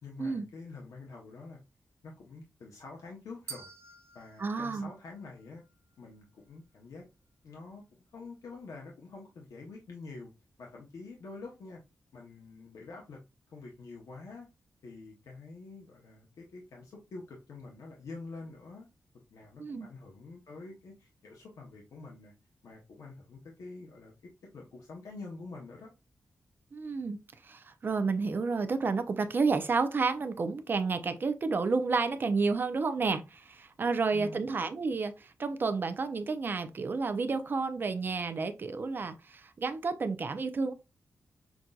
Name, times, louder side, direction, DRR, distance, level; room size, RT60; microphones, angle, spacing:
voice 1, 0.0-1.6 2.0-3.7 4.1-5.6 6.0-7.0 7.4-7.8 8.1-10.3 10.6-11.8 12.1-13.2 13.5-14.5 14.8-18.9 19.3-22.3 22.6-24.1 24.5-25.9 34.1-34.4, left 3 dB, 85° left, 0.8 m, -47 dB
sound 1, 3.5-5.7, right 6 dB, 60° right, 0.9 m, -49 dB
voice 2, 4.4-4.9 19.6-19.9 26.7-27.2 27.4-40.7, right 4 dB, 40° right, 0.4 m, -31 dB
5.8 x 2.6 x 2.3 m
wide cardioid pair, 180°, 6 cm